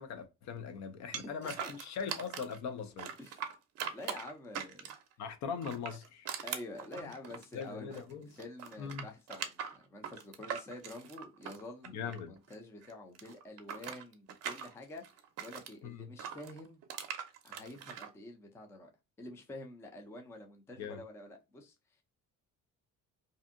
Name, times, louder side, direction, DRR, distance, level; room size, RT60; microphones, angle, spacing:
voice 1, 0.0-3.1 5.2-6.3 7.0-7.1 7.5-8.3 8.8-9.0 11.9-12.3 15.8-16.1 20.8-21.0, left 6 dB, 60° left, 0.5 m, -41 dB
voice 2, 1.1-1.7 3.2-3.5 3.9-5.0 5.5-5.6 6.4-15.0 15.4-16.8 17.4-18.9 19.2-21.7, left 2 dB, 10° left, 0.3 m, -48 dB
sound 1, 1.1-2.6 3.0-5.1 5.6-8.1 8.4-12.5 12.8-15.7 16.2-18.1, right 8 dB, 50° right, 0.6 m, -42 dB
2.6 x 2.5 x 2.5 m
cardioid pair, 160°, 32 cm